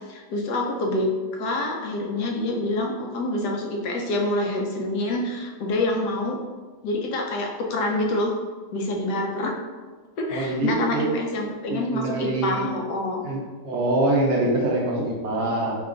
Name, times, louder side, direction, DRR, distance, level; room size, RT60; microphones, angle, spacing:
voice 1, 0.1-6.4 6.8-8.3 8.7-9.5 10.2-13.3, left 2 dB, 85° left, 1 dB, 1.2 m, -26 dB
voice 2, 10.3-11.1 11.7-12.7 13.2-15.8, right 2 dB, 60° right, -2 dB, 0.8 m, -24 dB
3.2 x 2.3 x 3.7 m, 1.4 s
omnidirectional pair, 1.7 m